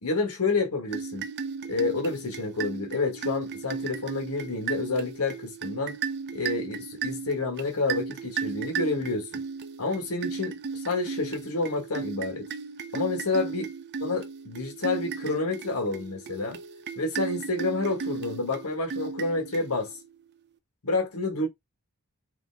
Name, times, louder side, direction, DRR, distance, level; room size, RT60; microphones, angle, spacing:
voice 1, 0.0-1.2 1.7-6.0 6.3-9.4 9.8-12.5 12.9-13.7 14.0-16.6 17.0-19.9 20.8-21.5, left 3 dB, 85° left, 1.5 m, -29 dB
sound 1, 0.9-20.1, right 5 dB, 50° right, 0.5 m, -35 dB
5.1 x 2.8 x 3.4 m
head